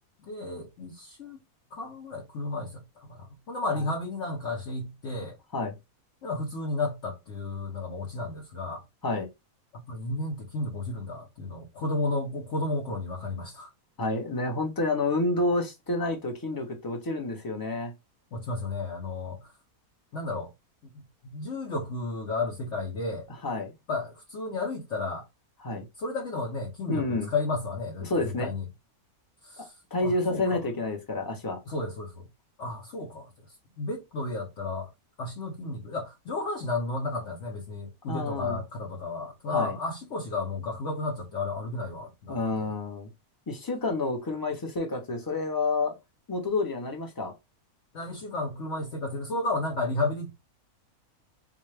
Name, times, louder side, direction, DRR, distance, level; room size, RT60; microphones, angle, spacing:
voice 1, 0.3-1.4 1.7-5.4 6.2-8.8 9.9-13.7 18.3-19.5 20.1-20.5 20.8-23.3 23.9-25.2 26.0-28.7 29.4-29.7 30.0-30.6 31.7-32.3 32.6-33.3 33.8-34.9 35.2-42.7 47.9-50.3, left 2 dB, 55° left, 1.1 m, -33 dB
voice 2, 14.0-17.9 23.4-23.7 25.6-25.8 26.9-27.3 28.0-28.5 29.6-31.6 38.1-38.6 39.5-39.7 42.3-43.1 43.5-45.9 46.3-47.3, left 2 dB, 20° left, 0.7 m, -29 dB
3.6 x 2.6 x 3.2 m
omnidirectional pair, 1.6 m